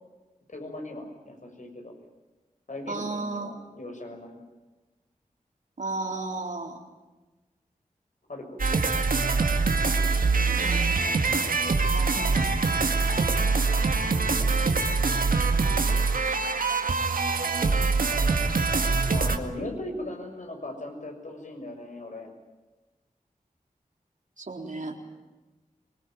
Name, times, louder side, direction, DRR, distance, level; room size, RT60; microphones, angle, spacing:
voice 1, 0.5-1.9 2.7-4.4 8.3-8.8 13.0-13.2 19.1-22.3, left 1 dB, 60° left, 4 dB, 6.5 m, -38 dB
voice 2, 2.9-3.5 5.8-6.8 10.6-12.5 14.1-14.6 24.4-24.9, right 3 dB, 65° right, 2 dB, 4.0 m, -35 dB
sound 1, 8.6-19.4, right 4 dB, 85° right, 1.9 m, -24 dB
24.5 x 20.5 x 9.2 m, 1.2 s
cardioid pair, 45°, 14 cm